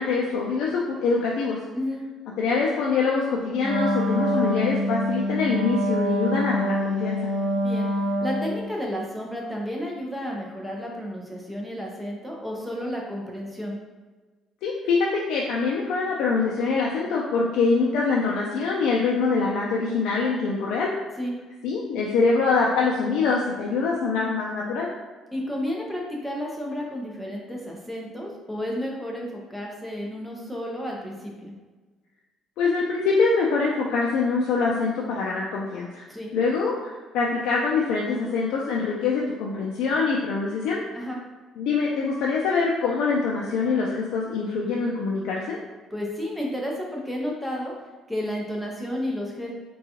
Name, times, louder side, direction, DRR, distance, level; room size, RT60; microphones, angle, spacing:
voice 1, 0.0-1.6 2.4-7.2 14.6-20.9 21.6-24.9 32.6-36.0 36.3-40.8 41.6-45.6, left 4 dB, 75° left, -3 dB, 0.4 m, -24 dB
voice 2, 1.7-2.0 7.5-7.9 8.2-13.8 21.2-21.3 25.3-31.5 36.1-36.3 40.9-41.2 45.9-47.7 48.1-49.5, equal, ahead, -2 dB, 0.6 m, -32 dB
Wind instrument woodwind instrument, 3.6-8.7, equal, 20° right, 1.2 m, -25 dB
3.7 x 2.3 x 2.8 m, 1.3 s
cardioid pair, 135°, 0 cm